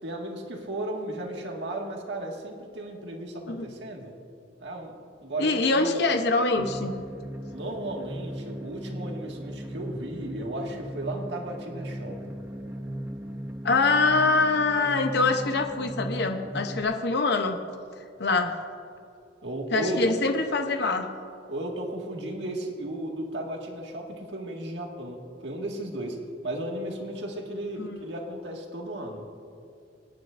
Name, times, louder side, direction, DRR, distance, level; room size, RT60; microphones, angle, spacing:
voice 1, 0.0-4.1 4.6-4.9 5.2-6.0 7.5-12.4 19.4-20.1 21.5-26.2 26.4-29.2, right 1 dB, 70° right, 0 dB, 1.8 m, -34 dB
voice 2, 5.4-7.0 13.6-17.6 18.2-18.6 19.7-21.1 27.8-28.0, left 3 dB, 65° left, 6 dB, 0.7 m, -24 dB
sound 1, 6.5-16.8, right 1 dB, 10° right, 0.8 m, -38 dB
26.0 x 9.4 x 2.5 m, 2.5 s
head